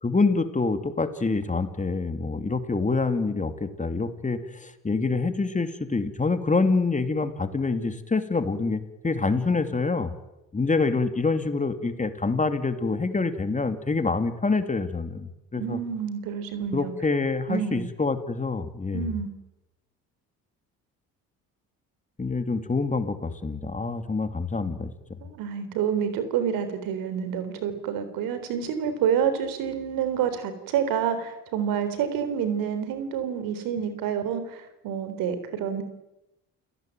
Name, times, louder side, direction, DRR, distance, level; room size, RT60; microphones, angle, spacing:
voice 1, 0.0-10.1 10.5-15.8 16.7-19.1 22.2-24.9, left 3 dB, 20° left, 9 dB, 2.7 m, -26 dB
voice 2, 15.6-16.9 17.5-17.8 18.9-19.3 25.2-35.8, right 8 dB, 80° right, 11 dB, 3.8 m, -28 dB
29.5 x 17.0 x 9.2 m, 0.94 s
supercardioid pair, 75°, 34 cm